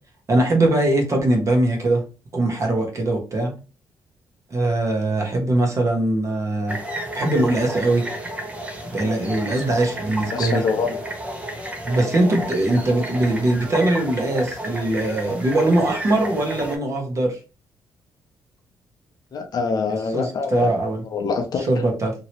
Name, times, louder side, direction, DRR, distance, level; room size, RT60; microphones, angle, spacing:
voice 1, 0.3-2.0 2.3-3.5 4.5-8.0 8.9-10.6 11.8-17.4 20.1-21.0 21.7-22.1, right 1 dB, 40° right, 1.1 m, -21 dB
sound 1, 6.7-16.8, right 1 dB, 15° right, 0.8 m, -32 dB
voice 2, 10.3-11.0 19.3-20.7 21.0-21.7, left 4 dB, 55° left, 0.7 m, -25 dB
2.9 x 2.9 x 2.9 m
cardioid pair, 100°, 8 cm